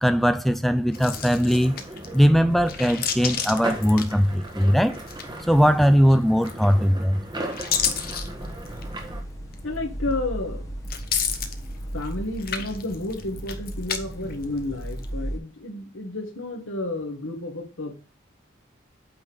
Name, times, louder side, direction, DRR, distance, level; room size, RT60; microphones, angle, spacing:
voice 1, 0.0-1.8 2.1-5.0 5.5-7.2, equal, ahead, 0.5 m, -20 dB
sound 1, 0.9-2.2 2.6-4.6 4.9-5.6 6.4-6.9 7.3-8.9 9.5-9.6 10.8-12.1 12.4-14.0 14.3-15.1, left 8 dB, 50° left, 0.9 m, -30 dB
sound 2, 0.9-9.2, right 1 dB, 20° right, 1.5 m, -37 dB
sound 3, 7.7-15.4, right 1 dB, 15° left, 1.2 m, -36 dB
voice 2, 9.6-10.7 11.8-18.0, left 2 dB, 85° left, 1.8 m, -31 dB
8.7 x 3.8 x 6.2 m
head